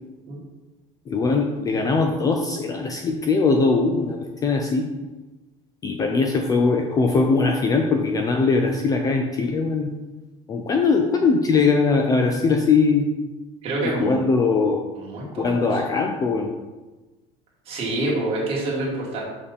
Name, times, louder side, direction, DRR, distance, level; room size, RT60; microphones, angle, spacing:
voice 1, 1.1-4.9 5.8-9.9 10.5-13.1 13.8-14.8 15.4-16.5, left 4 dB, 20° left, 3 dB, 0.4 m, -21 dB
voice 2, 13.6-14.2 15.0-15.8 16.3-16.4 17.7-19.2, right 2 dB, 30° right, -4 dB, 2.0 m, -27 dB
6.8 x 5.5 x 4.2 m, 1.2 s
cardioid pair, 175°, 18 cm